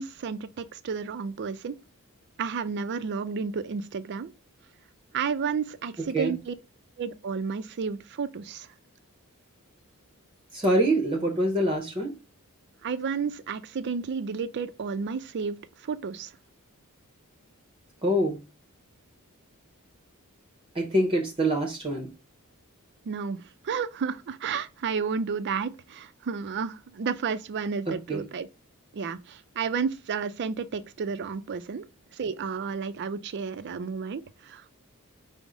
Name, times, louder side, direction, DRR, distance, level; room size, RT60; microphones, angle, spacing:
voice 1, 0.0-1.8 2.4-4.3 5.1-6.5 7.0-8.7 12.8-15.6 15.8-16.3 23.0-28.5 28.9-31.9 32.1-34.8, right 5 dB, 50° right, 0.4 m, -31 dB
voice 2, 10.5-12.1 18.0-18.4 20.7-22.1 28.1-28.2, right 1 dB, 25° right, 0.8 m, -25 dB
5.3 x 2.1 x 4.8 m
head